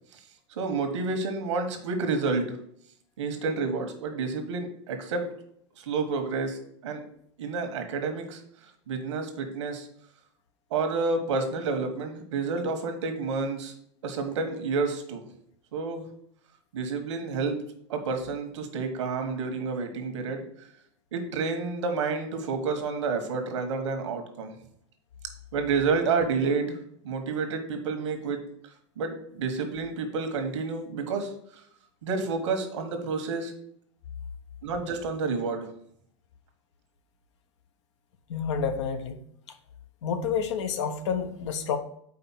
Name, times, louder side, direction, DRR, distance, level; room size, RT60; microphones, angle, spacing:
voice 1, 0.6-2.6 3.2-5.3 5.8-6.6 6.8-7.0 7.4-8.4 8.9-9.9 10.7-13.7 14.0-15.2 15.7-16.0 16.7-17.6 17.9-20.4 21.1-24.5 25.5-26.8 27.0-28.4 29.0-31.3 32.0-33.5 34.6-35.7, right 4 dB, 75° right, 6 dB, 1.2 m, -29 dB
voice 2, 38.3-39.2 40.0-41.8, left 6 dB, 75° left, 8 dB, 0.8 m, -29 dB
4.9 x 4.0 x 5.7 m, 0.69 s
hypercardioid pair, 105°, 15 cm